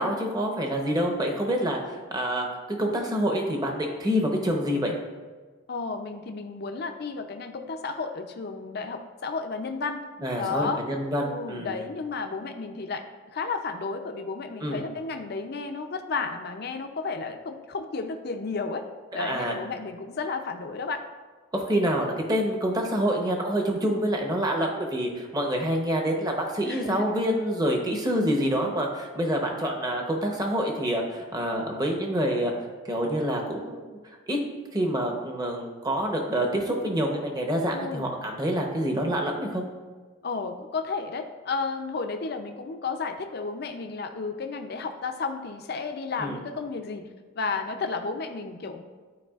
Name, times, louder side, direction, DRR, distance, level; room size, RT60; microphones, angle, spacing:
voice 1, 0.0-4.9 10.2-11.7 14.6-14.8 19.1-19.5 21.5-32.5 32.9-33.8 34.3-34.4 34.7-39.6 46.2-46.4, equal, 20° right, 1 dB, 0.8 m, -27 dB
voice 2, 5.7-10.0 10.4-10.8 11.2-13.0 13.3-18.9 19.1-21.0 26.7-27.0 37.7-38.1 40.2-47.1 47.4-48.8, left 4 dB, 50° left, 6 dB, 0.5 m, -32 dB
11.5 x 4.8 x 2.4 m, 1.4 s
head